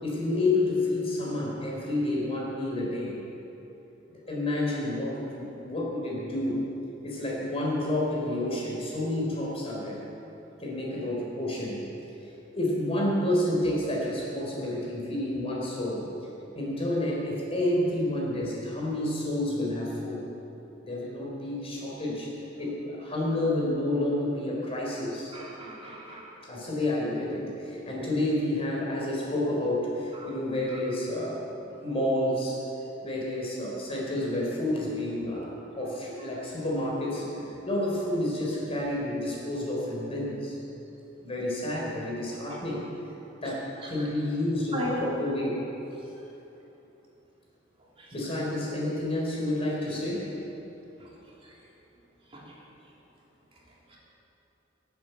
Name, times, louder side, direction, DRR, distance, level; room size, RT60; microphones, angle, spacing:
voice 1, 0.0-3.2 4.1-6.6 7.0-10.0 10.6-11.8 12.5-16.1 16.5-20.2 20.8-22.3 22.6-25.3 26.4-31.5 31.8-32.6 33.0-37.3 37.7-40.6 41.2-42.8 43.4-45.6 48.1-50.3, left 1 dB, 30° left, -3 dB, 3.9 m, -29 dB
voice 2, 25.3-26.3 30.2-30.3 42.5-42.6 43.8-44.1 44.7-45.1 48.0-48.1 51.0-51.1 51.4-51.5 52.3-52.5 53.9-54.0, equal, 30° right, -5 dB, 3.0 m, -36 dB
18.5 x 8.2 x 8.1 m, 3.0 s
head